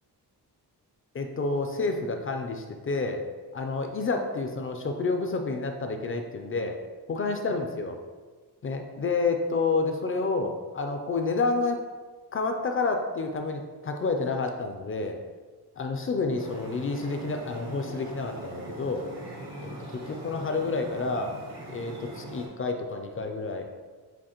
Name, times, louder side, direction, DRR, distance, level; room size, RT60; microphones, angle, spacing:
voice 1, 1.1-3.2 3.5-6.8 7.1-8.0 8.6-11.8 12.3-15.2 15.8-19.1 19.6-19.8 20.1-21.3 21.7-23.6, left 3 dB, 35° left, 4 dB, 0.4 m, -29 dB
sound 1, 16.4-22.5, right 1 dB, 75° right, 1.2 m, -41 dB
7.1 x 2.5 x 2.9 m, 1.4 s
wide cardioid pair, 145°, 40 cm